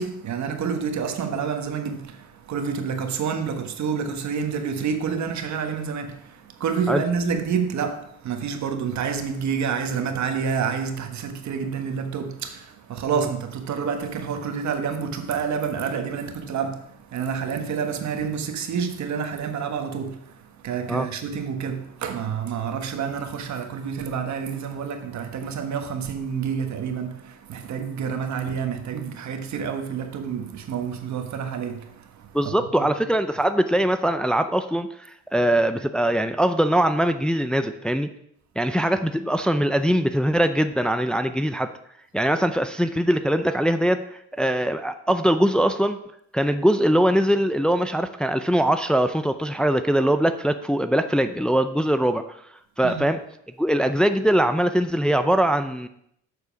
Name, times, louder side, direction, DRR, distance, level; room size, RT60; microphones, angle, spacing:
voice 1, 0.0-32.4 32.8-32.9 52.8-53.0, right 6 dB, 65° right, 1.4 m, -28 dB
voice 2, 32.3-38.1 38.6-41.7 42.1-46.0 46.3-52.2 52.8-53.2 53.6-55.9, right 1 dB, 5° left, 0.5 m, -22 dB
7.3 x 6.7 x 5.9 m
cardioid pair, 90°, 30 cm